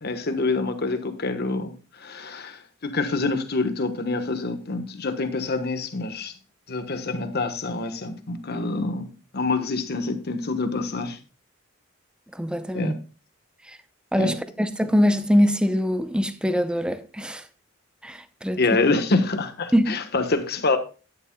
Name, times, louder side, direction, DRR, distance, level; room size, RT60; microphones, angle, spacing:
voice 1, 0.0-6.3 6.7-9.1 9.3-11.2 12.7-12.9 14.1-14.4 18.6-20.8, left 3 dB, 50° left, 1.2 m, -26 dB
voice 2, 12.4-12.9 14.1-17.4 18.0-18.6 19.7-20.0, equal, 5° right, 0.6 m, -23 dB
12.5 x 10.0 x 2.3 m
head